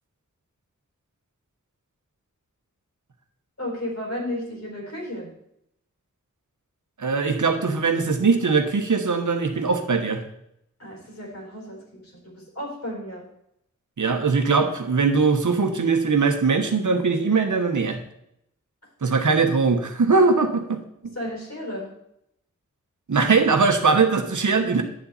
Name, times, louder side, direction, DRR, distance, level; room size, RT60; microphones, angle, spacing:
voice 1, 3.6-5.3 10.8-13.3 21.1-21.9 24.5-24.7, left 1 dB, 60° left, -2 dB, 4.3 m, -33 dB
voice 2, 7.0-10.2 14.0-18.0 19.0-20.8 23.1-24.8, right 4 dB, 75° right, 6 dB, 1.3 m, -21 dB
10.0 x 7.2 x 4.2 m, 0.76 s
cardioid pair, 45°, 30 cm